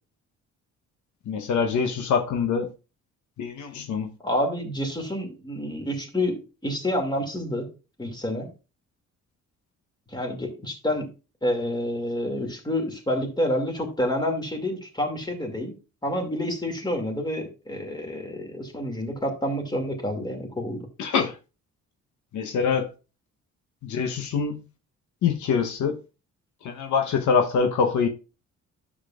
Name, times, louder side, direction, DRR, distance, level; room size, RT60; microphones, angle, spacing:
voice 1, 1.3-2.7 3.4-4.1 21.0-21.4 22.3-22.9 23.8-24.6 25.2-26.0 26.6-28.1, left 6 dB, 75° left, 1.0 m, -24 dB
voice 2, 4.2-7.7 8.0-8.5 10.1-11.1 11.4-15.7 16.0-20.9, left 1 dB, 15° left, 2.4 m, -28 dB
10.0 x 7.4 x 2.4 m
cardioid pair, 90°, 30 cm